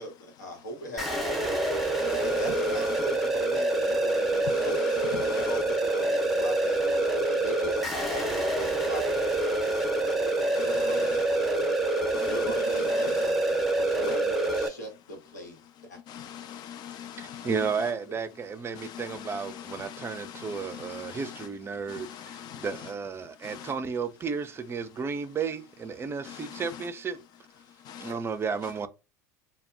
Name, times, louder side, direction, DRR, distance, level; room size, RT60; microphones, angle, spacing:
voice 1, 0.0-1.6 2.2-11.8 12.2-16.0 18.1-18.2, equal, 90° left, 0.9 m, -41 dB
sound 1, 1.0-14.7, right 2 dB, ahead, 0.8 m, -26 dB
voice 2, 2.0-3.0 4.5-5.6 10.5-11.2 12.1-13.3 14.0-14.2 16.1-17.9 18.7-21.5 21.8-22.9 23.4-23.7 26.2-26.9 27.9-28.1 28.6-28.7, left 9 dB, 50° left, 0.4 m, -42 dB
voice 3, 17.2-22.1 22.6-27.1 28.1-28.9, right 5 dB, 25° right, 0.4 m, -33 dB
2.1 x 2.1 x 3.6 m
hypercardioid pair, 80°, 9 cm